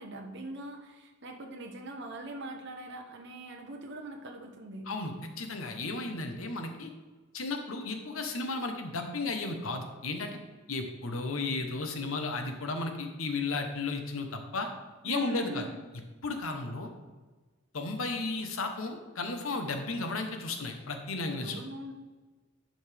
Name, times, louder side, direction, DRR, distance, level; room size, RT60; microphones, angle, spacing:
voice 1, 0.0-4.9 15.0-15.8 21.4-21.9, right 1 dB, 60° right, 2 dB, 0.9 m, -42 dB
voice 2, 4.9-6.9 7.3-10.4 10.7-14.7 15.0-15.7 16.2-16.9 17.7-21.6, left 3 dB, 85° left, 5 dB, 1.0 m, -34 dB
10.5 x 5.2 x 3.4 m, 1.3 s
head